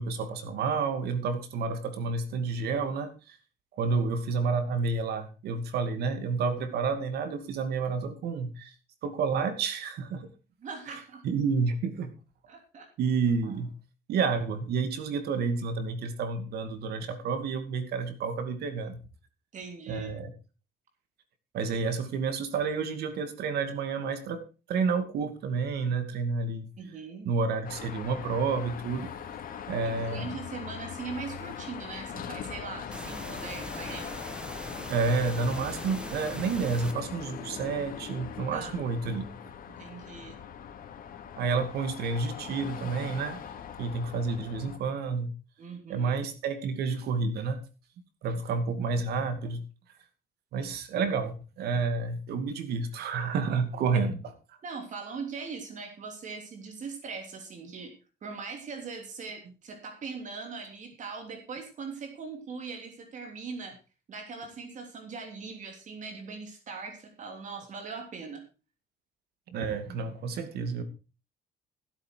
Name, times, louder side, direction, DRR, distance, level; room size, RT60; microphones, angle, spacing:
voice 1, 0.0-3.4 3.7-8.7 9.0-10.3 11.2-12.1 13.0-13.7 14.1-19.0 19.9-20.3 21.5-24.4 24.7-26.7 27.2-29.1 29.7-30.3 34.9-39.3 41.4-43.4 43.8-45.3 45.9-47.6 48.2-49.6 50.5-54.3 69.5-70.8, right 4 dB, 70° right, 9 dB, 2.5 m, -30 dB
voice 2, 10.6-11.2 12.5-12.9 13.4-13.5 19.5-20.1 26.8-27.3 29.8-34.2 38.5-38.7 39.7-40.3 45.6-46.1 53.9-54.0 54.6-57.9 58.2-63.8 64.1-68.4, right 5 dB, 45° right, 4 dB, 3.2 m, -40 dB
Car passing by / Traffic noise roadway noise / Engine, 27.6-44.8, left 8 dB, 55° left, 2.9 m, -41 dB
sound 1, 32.9-36.9, right 1 dB, 5° right, 1.6 m, -41 dB
15.5 x 8.6 x 4.7 m, 0.33 s
cardioid pair, 110°, 17 cm